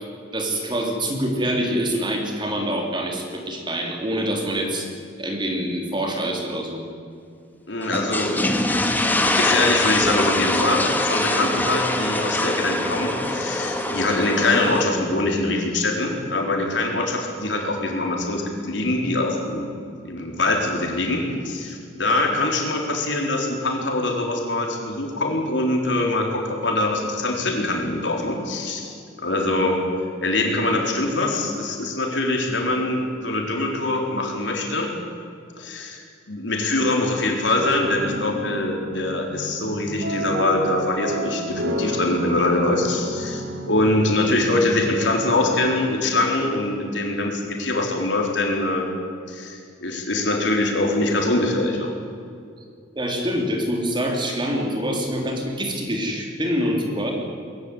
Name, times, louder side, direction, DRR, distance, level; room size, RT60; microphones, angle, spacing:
voice 1, 0.3-4.9 5.2-6.8 52.9-57.1, equal, 25° right, 1 dB, 3.5 m, -25 dB
voice 2, 7.7-8.6 9.0-19.7 20.0-29.8 30.2-34.9 35.6-36.0 36.3-48.9 49.3-51.9, left 2 dB, 75° left, 1 dB, 4.2 m, -23 dB
sound 1, 7.8-14.8, left 1 dB, 10° left, 1.9 m, -23 dB
sound 2, 37.6-45.9, right 1 dB, 85° right, 2.5 m, -30 dB
21.5 x 16.0 x 9.9 m, 2.3 s
head